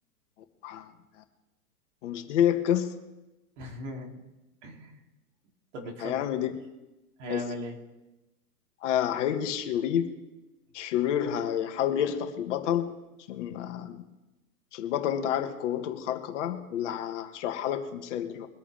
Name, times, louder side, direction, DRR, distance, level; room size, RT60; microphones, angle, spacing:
voice 1, 2.0-3.0 6.0-6.5 7.3-7.5 8.8-10.2 10.7-13.0 13.3-14.0 14.7-18.5, left 10 dB, 50° left, 5 dB, 2.0 m, -29 dB
voice 2, 3.6-4.2 4.6-5.0 5.7-6.2 7.2-7.8, equal, 50° right, 1 dB, 3.3 m, -38 dB
24.0 x 8.6 x 3.6 m, 1.0 s
hypercardioid pair, 125°, 46 cm